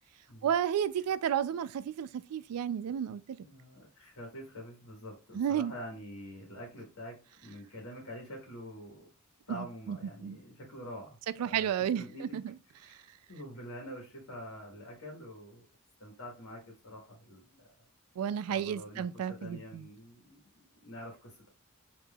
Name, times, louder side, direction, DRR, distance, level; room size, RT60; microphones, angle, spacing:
voice 1, 0.4-3.4 5.3-5.7 9.5-10.4 11.4-12.5 12.9-13.0 18.2-19.9, right 9 dB, 85° right, 0.3 m, -32 dB
voice 2, 3.4-9.1 9.5-12.4 12.7-15.6 16.0-17.9 18.5-21.5, equal, 70° left, 1.4 m, -46 dB
5.4 x 2.9 x 2.2 m
head